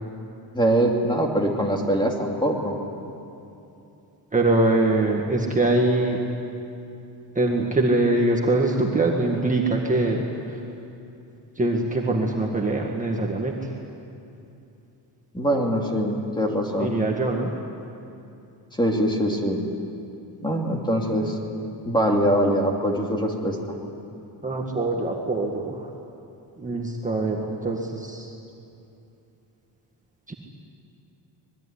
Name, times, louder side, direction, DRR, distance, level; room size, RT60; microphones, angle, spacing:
voice 1, 0.5-2.8 15.3-17.0 18.8-19.6 20.4-21.4 21.8-23.8, equal, 10° left, 0 dB, 2.6 m, -23 dB
voice 2, 4.3-6.2 7.3-10.6 11.6-13.7 16.8-17.5 24.4-25.9 26.6-28.3 30.3-30.4, right 2 dB, 15° right, -1 dB, 1.7 m, -23 dB
25.5 x 20.5 x 10.0 m, 2.8 s
wide cardioid pair, 175°, 44 cm